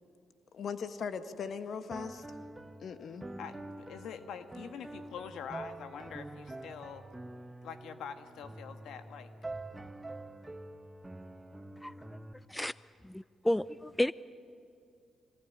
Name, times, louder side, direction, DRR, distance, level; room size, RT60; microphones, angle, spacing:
voice 1, 0.5-2.2 2.8-3.2, left 6 dB, 60° left, 10 dB, 1.5 m, -39 dB
sound 1, 1.9-12.3, right 2 dB, 15° right, 1.3 m, -46 dB
voice 2, 3.4-7.1 7.6-9.3, left 7 dB, 75° left, 8 dB, 1.6 m, -45 dB
voice 3, 13.0-14.1, left 1 dB, 10° left, 17 dB, 0.5 m, -31 dB
25.5 x 19.0 x 10.0 m, 2.6 s
supercardioid pair, 60°, 0 cm